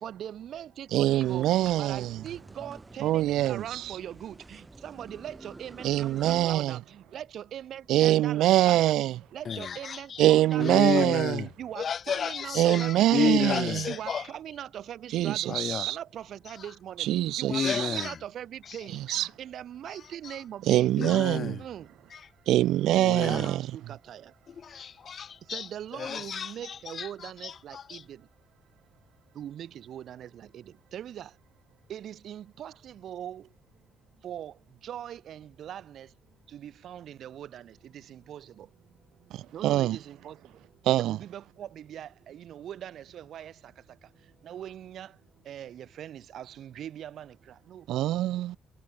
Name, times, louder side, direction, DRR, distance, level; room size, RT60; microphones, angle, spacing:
voice 1, 0.0-8.9 9.3-11.2 11.6-13.3 13.9-15.6 15.9-17.1 17.4-19.0 19.4-20.9 21.6-21.9 23.2-24.2 25.5-28.2 29.4-30.6 30.9-31.3 31.9-33.4 34.2-34.5 34.8-36.1 36.5-38.7 39.5-40.4 41.0-43.5 44.4-45.1 45.5-47.3 47.7-47.8, right 10 dB, 60° right, 2.3 m, -41 dB
voice 2, 0.9-2.2 3.0-3.9 5.8-6.8 7.9-9.2 10.2-11.4 12.6-13.9 15.1-16.0 17.0-18.0 18.9-19.3 20.7-21.6 22.5-23.6 39.3-40.0 40.9-41.2 47.9-48.6, right 14 dB, 80° right, 0.5 m, -24 dB
sound 1, 1.0-6.5, right 2 dB, 15° right, 2.8 m, -48 dB
voice 3, 9.5-11.5 11.8-14.3 15.5-15.9 17.5-18.2 18.7-18.8 19.1-19.2 20.2-20.4 21.0-21.6 22.1-22.2 22.9-23.5 24.5-28.0, left 7 dB, 45° left, 0.4 m, -32 dB
cardioid pair, 130°, 0 cm